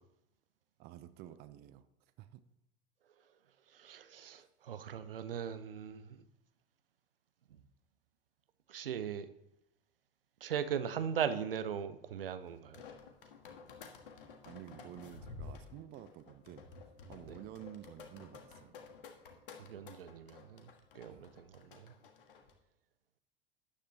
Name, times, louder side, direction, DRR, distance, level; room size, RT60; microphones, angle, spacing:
voice 1, 0.8-1.9 2.2-2.4 4.3-4.4 14.5-16.7 17.1-18.8 21.1-21.3, right 12 dB, 35° right, 0.6 m, -51 dB
voice 2, 3.7-6.2 8.7-9.3 10.4-12.8 17.3-17.4 19.6-21.9, right 8 dB, 70° right, 0.8 m, -39 dB
sound 1, 12.5-22.5, left 4 dB, 65° left, 1.7 m, -52 dB
13.0 x 10.0 x 3.3 m
figure-of-eight pair, 80°, 29 cm